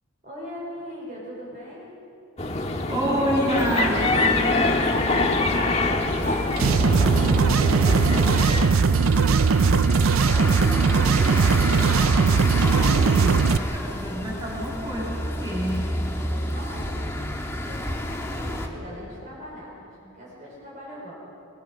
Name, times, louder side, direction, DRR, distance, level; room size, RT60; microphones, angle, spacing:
voice 1, 0.2-1.9 6.2-10.9 16.2-17.2 17.5-21.1, equal, 40° right, -6 dB, 5.4 m, -41 dB
sound 1, 2.4-8.7, left 2 dB, 30° left, 1.6 m, -24 dB
voice 2, 2.6-5.9 11.3-15.9, equal, 20° right, -4 dB, 6.7 m, -29 dB
sound 2, 3.6-18.7, left 1 dB, 10° left, 1.6 m, -30 dB
sound 3, 6.5-13.6, right 5 dB, 80° right, 0.5 m, -19 dB
23.5 x 21.5 x 6.6 m, 2.7 s
head